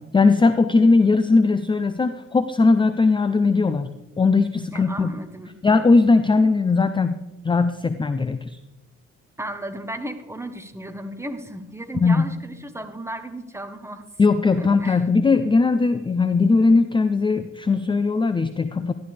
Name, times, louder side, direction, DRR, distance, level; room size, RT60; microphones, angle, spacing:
voice 1, 0.0-3.9 4.2-5.1 5.6-8.4 11.9-12.3 14.2-18.9, left 3 dB, 15° left, 11 dB, 0.5 m, -19 dB
voice 2, 4.7-5.6 9.4-14.1 14.6-15.0, right 1 dB, 10° right, 8 dB, 1.1 m, -34 dB
13.0 x 11.5 x 3.4 m, 1.0 s
cardioid pair, 90°, 30 cm